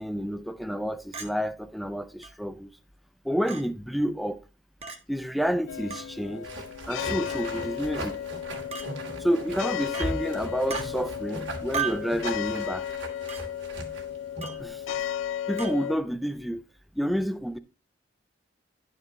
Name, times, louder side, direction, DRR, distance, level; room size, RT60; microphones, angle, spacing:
voice 1, 0.0-2.7 3.2-4.4 5.1-6.5 6.9-8.2 9.2-12.8 14.6-14.8 15.5-16.6 17.0-17.6, equal, ahead, 0.4 m, -29 dB
Chink clink, 1.1-1.3 2.2-2.3 3.5-3.6 4.8-5.0 5.9-6.1 7.3-7.5 8.7-8.9 9.9-10.1 10.7-10.9 11.7-12.1 13.3-13.4 14.4-14.6 15.6-15.8, right 6 dB, 35° right, 1.0 m, -34 dB
sound 1, 5.7-16.0, left 10 dB, 80° left, 0.3 m, -34 dB
sound 2, 6.4-14.6, right 2 dB, 70° right, 1.8 m, -38 dB
10.5 x 4.5 x 3.9 m
head